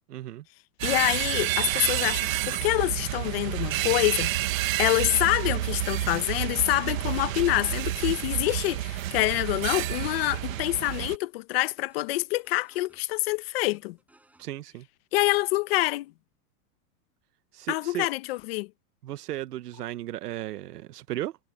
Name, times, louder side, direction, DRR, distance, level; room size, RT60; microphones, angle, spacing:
voice 1, 0.1-0.4 14.4-14.9 17.5-18.1 19.0-21.4, right 14 dB, 80° right, 1.2 m, -35 dB
voice 2, 0.8-4.3 4.8-14.0 15.1-16.1 17.7-18.7, left 19 dB, 40° left, 1.1 m, -26 dB
sound 1, 0.8-11.2, right 15 dB, 60° right, 1.6 m, -29 dB
sound 2, 5.9-6.4 6.7-6.8 7.2-9.0 9.3-10.8 11.1-11.2 11.5-13.4 13.7-14.5, right 2 dB, 5° right, 6.8 m, -61 dB
supercardioid pair, 170°, 46 cm